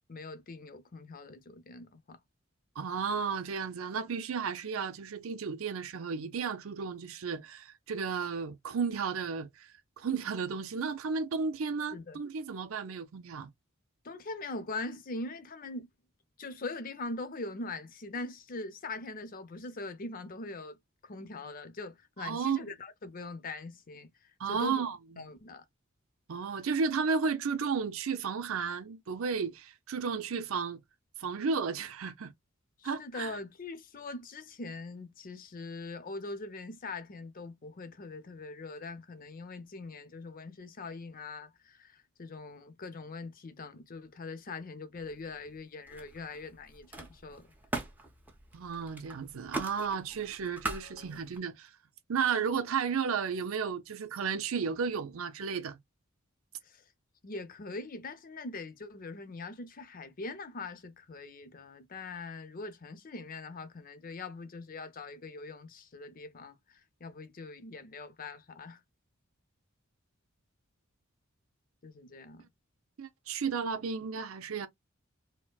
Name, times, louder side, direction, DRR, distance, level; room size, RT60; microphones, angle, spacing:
voice 1, 0.1-2.2 11.9-12.2 14.0-15.9 16.4-20.8 21.0-24.8 25.2-25.6 32.8-47.5 50.8-51.2 56.6-56.8 57.2-68.8 71.8-72.5, left 3 dB, 45° left, 0.6 m, -42 dB
voice 2, 2.8-13.5 22.2-22.6 24.4-25.3 26.3-30.8 31.2-32.3 32.8-33.4 48.5-51.7 52.1-55.8 73.0-74.7, right 5 dB, 80° right, 0.5 m, -33 dB
Camera, 44.9-45.6 45.9-51.4, right 2 dB, 10° right, 0.8 m, -42 dB
4.3 x 2.1 x 2.3 m
head